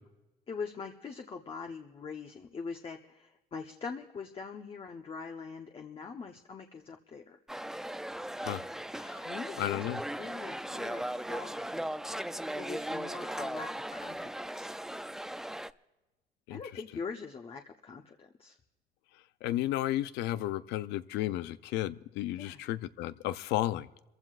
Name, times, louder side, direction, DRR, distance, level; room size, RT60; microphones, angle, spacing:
voice 1, 0.5-7.4 9.2-9.8 10.1-11.9 12.5-14.7 16.5-18.6 22.3-22.6, left 5 dB, 35° left, 3 dB, 0.9 m, -43 dB
sound 1, 7.5-15.7, right 1 dB, 5° right, 0.4 m, -38 dB
voice 2, 9.6-10.0 16.5-16.6 19.4-23.9, left 14 dB, 85° left, 14 dB, 0.5 m, -33 dB
28.0 x 15.0 x 2.4 m, 1.0 s
cardioid pair, 110°, 17 cm